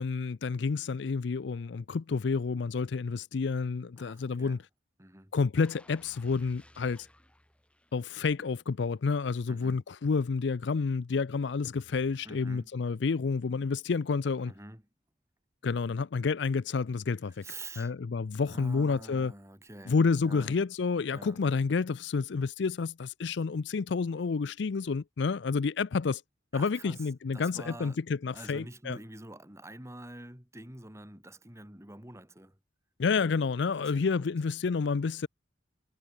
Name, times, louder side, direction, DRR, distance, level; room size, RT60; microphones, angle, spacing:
voice 1, 0.0-4.6 5.3-7.1 7.9-14.5 15.6-17.4 17.8-19.3 19.9-26.2 26.5-29.0 33.0-35.3, left 4 dB, 60° left, 0.5 m, -29 dB
voice 2, 4.0-4.6 5.0-5.3 9.5-9.8 12.2-12.7 14.5-14.8 17.4-17.9 18.5-20.5 21.1-21.4 26.5-28.0 28.3-32.6 33.8-34.3, right 2 dB, 15° right, 4.1 m, -47 dB
sound 1, 5.6-8.5 8.9-9.1, left 1 dB, 5° left, 3.2 m, -59 dB
head